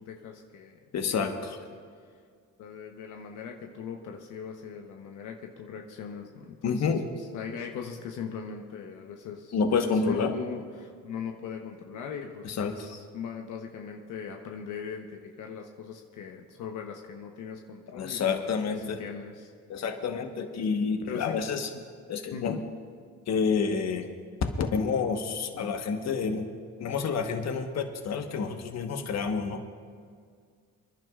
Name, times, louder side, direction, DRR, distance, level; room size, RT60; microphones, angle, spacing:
voice 1, 0.0-0.8 1.1-1.5 2.6-9.5 9.8-19.5 21.1-21.4 21.7-21.8 22.3-22.6, left 7 dB, 85° left, 2 dB, 1.0 m, -40 dB
voice 2, 0.9-1.6 6.6-7.0 9.5-10.3 12.4-12.7 17.9-19.0 19.7-21.7 22.1-22.6 23.3-24.1 24.6-26.5 26.8-29.6, left 5 dB, 60° left, 5 dB, 1.3 m, -29 dB
28.0 x 11.0 x 2.5 m, 2.1 s
cardioid pair, 90°, 30 cm